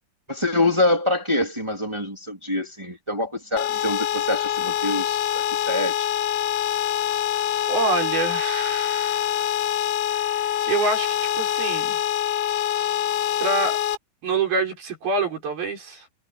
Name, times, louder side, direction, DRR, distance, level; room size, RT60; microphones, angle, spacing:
voice 1, 0.3-6.1, left 2 dB, 10° right, 1.6 m, -25 dB
sound 1, 3.6-14.0, left 11 dB, 85° left, 3.9 m, -25 dB
voice 2, 7.7-9.6 10.1-12.0 13.4-13.8 14.2-16.1, right 3 dB, 45° right, 7.5 m, -26 dB
omnidirectional pair, 5.9 m